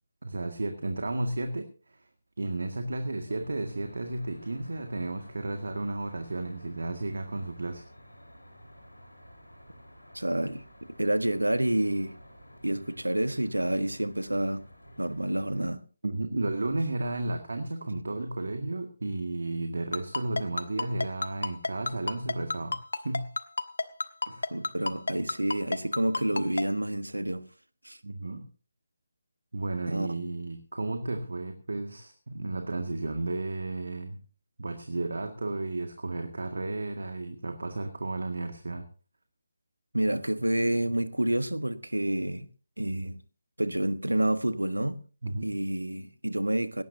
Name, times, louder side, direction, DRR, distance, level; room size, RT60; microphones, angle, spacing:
voice 1, 0.2-2.0 2.4-7.8 16.0-22.8 23.0-23.3 24.3-24.5 28.0-28.5 29.5-34.2 34.6-38.9 45.2-45.5, right 2 dB, 65° right, 2.0 m, -33 dB
Traffic noise roadway noise, 3.3-15.7, equal, 85° left, 4.5 m, -52 dB
voice 2, 10.1-12.2 12.6-14.6 15.0-15.8 24.5-27.4 27.8-28.0 29.9-30.1 39.9-42.5 42.8-43.2 43.6-45.0 45.4-46.8, right 1 dB, 80° right, 1.3 m, -28 dB
Ringtone, 19.9-26.6, left 3 dB, 65° left, 1.2 m, -29 dB
18.5 x 17.5 x 2.8 m
figure-of-eight pair, 150°, 0 cm